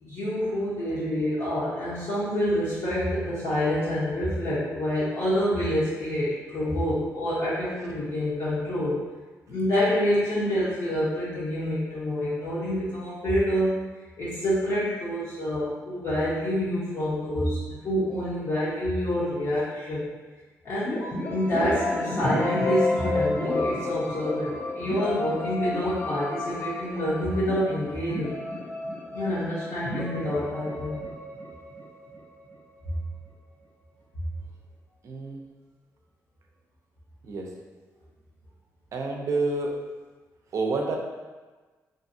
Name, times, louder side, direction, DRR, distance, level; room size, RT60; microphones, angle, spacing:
voice 1, 0.0-8.9 9.5-13.8 14.2-20.1 20.6-21.0 21.3-28.3 29.1-31.0, equal, 60° left, -11 dB, 0.8 m, -27 dB
sound 1, 20.9-32.6, left 2 dB, 35° left, 0.5 m, -31 dB
voice 2, 35.0-35.4 37.2-37.5 38.9-39.7 40.5-41.0, right 3 dB, 55° right, 1 dB, 0.4 m, -28 dB
2.6 x 2.4 x 2.6 m, 1.3 s
cardioid pair, 95°, 6 cm